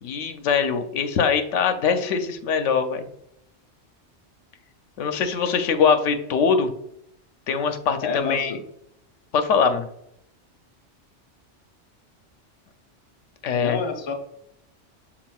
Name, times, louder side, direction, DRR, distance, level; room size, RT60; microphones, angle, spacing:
voice 1, 0.0-3.0 5.0-6.7 7.5-8.5 9.3-9.9 13.4-13.8, left 6 dB, 85° left, 8 dB, 0.9 m, -22 dB
voice 2, 8.0-8.6 13.6-14.1, left 5 dB, 30° left, 4 dB, 0.5 m, -28 dB
6.0 x 3.9 x 2.3 m, 0.77 s
omnidirectional pair, 1.2 m